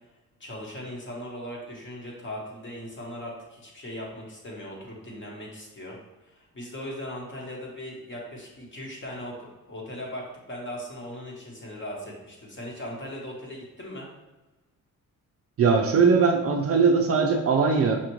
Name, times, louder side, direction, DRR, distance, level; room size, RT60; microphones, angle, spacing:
voice 1, 0.4-14.1, left 1 dB, 35° left, -2 dB, 1.2 m, -39 dB
voice 2, 15.6-18.0, right 5 dB, 45° right, 2 dB, 0.4 m, -20 dB
5.7 x 2.4 x 3.0 m, 1.1 s
cardioid pair, 120°, 33 cm